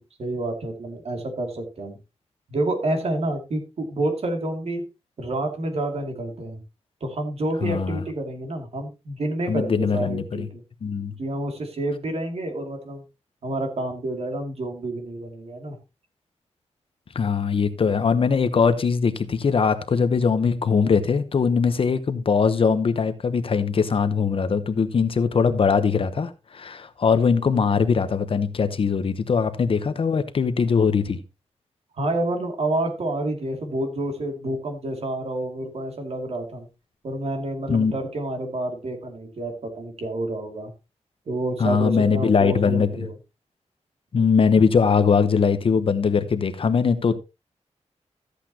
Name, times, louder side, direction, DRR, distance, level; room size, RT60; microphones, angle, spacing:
voice 1, 0.2-2.0 2.5-4.8 5.2-6.6 7.0-10.6 11.2-13.0 13.4-15.8 32.0-36.7 37.0-40.7 41.3-43.1, right 1 dB, 60° right, 2.5 m, -29 dB
voice 2, 7.6-8.0 9.5-10.5 10.8-11.1 17.1-31.2 37.7-37.9 41.6-42.9 44.1-47.2, left 5 dB, 50° left, 0.9 m, -21 dB
13.5 x 8.3 x 2.9 m
wide cardioid pair, 160°, 12 cm